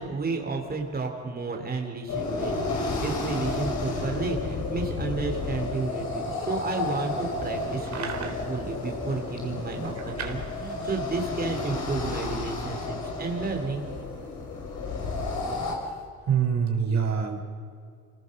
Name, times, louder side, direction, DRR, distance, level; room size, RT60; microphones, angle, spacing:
voice 1, 0.0-13.8, right 3 dB, 30° right, 3 dB, 3.2 m, -32 dB
sound 1, 2.1-15.7, left 3 dB, 75° left, 5.7 m, -32 dB
voice 2, 7.9-8.4 9.8-10.3 16.3-17.4, right 7 dB, 65° right, 3 dB, 3.9 m, -27 dB
26.5 x 19.0 x 6.6 m, 2.2 s
cardioid pair, 90°, 30 cm